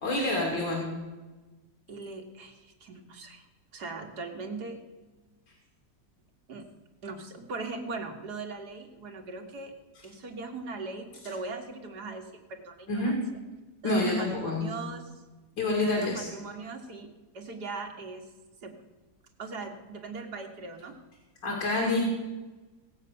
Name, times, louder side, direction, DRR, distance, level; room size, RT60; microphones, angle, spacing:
voice 1, 0.0-0.9 12.9-13.2 13.8-14.7 15.6-16.3 21.4-22.1, left 2 dB, 85° left, -1 dB, 3.4 m, -27 dB
voice 2, 1.9-3.5 3.7-4.8 6.5-6.7 7.0-9.7 10.0-13.2 13.8-15.1 15.8-18.3 18.6-18.8 19.4-21.0, right 3 dB, 65° right, 3 dB, 2.2 m, -39 dB
18.0 x 8.1 x 6.7 m, 1.2 s
omnidirectional pair, 1.9 m